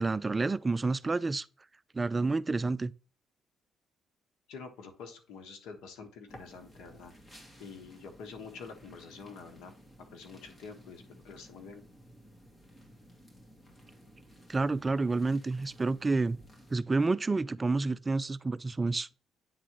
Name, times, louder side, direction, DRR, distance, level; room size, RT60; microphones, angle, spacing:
voice 1, 0.0-1.5 1.9-2.9 14.5-16.4 16.7-19.1, right 3 dB, 25° right, 0.3 m, -29 dB
voice 2, 4.5-7.1 7.6-9.7 10.1-11.8, left 5 dB, 90° left, 1.4 m, -47 dB
sound 1, 6.3-16.8, equal, 20° left, 2.2 m, -55 dB
9.3 x 3.8 x 3.0 m
cardioid pair, 90°, 0 cm